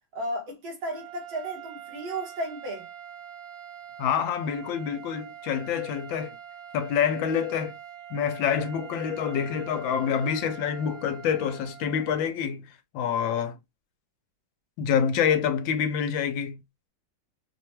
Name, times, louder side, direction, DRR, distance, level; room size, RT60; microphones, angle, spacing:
voice 1, 0.1-2.9, right 1 dB, 90° right, 2.3 m, -34 dB
sound 1, 0.8-12.4, right 9 dB, 50° right, 1.5 m, -44 dB
voice 2, 4.0-6.3 6.7-7.8 8.1-12.7 12.9-13.6 14.8-16.6, left 8 dB, 85° left, 1.4 m, -27 dB
4.9 x 2.2 x 2.9 m
omnidirectional pair, 2.1 m